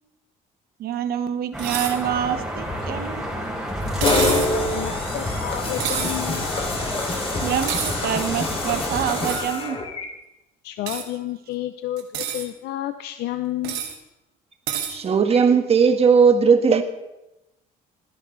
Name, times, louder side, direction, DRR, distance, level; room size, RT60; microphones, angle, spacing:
voice 1, 0.8-3.2 7.4-9.8, right 9 dB, 65° right, 9 dB, 1.3 m, -26 dB
sound 1, 1.5-9.4, equal, 5° right, 4.5 m, -31 dB
sound 2, 1.6-2.0 4.0-4.5 5.8-6.2 7.6-8.0 9.2-9.5 10.9-11.1 12.0-12.5 13.6-14.0 14.7-15.0, right 9 dB, 90° right, 1.7 m, -28 dB
voice 2, 3.9-6.5 10.6-13.8, left 13 dB, 75° left, 9 dB, 0.6 m, -30 dB
sound 3, 4.0-10.0, left 2 dB, 35° left, 2.8 m, -26 dB
voice 3, 14.9-16.8, right 5 dB, 35° right, 7 dB, 1.6 m, -16 dB
27.0 x 10.5 x 3.2 m, 0.94 s
cardioid pair, 110°, 17 cm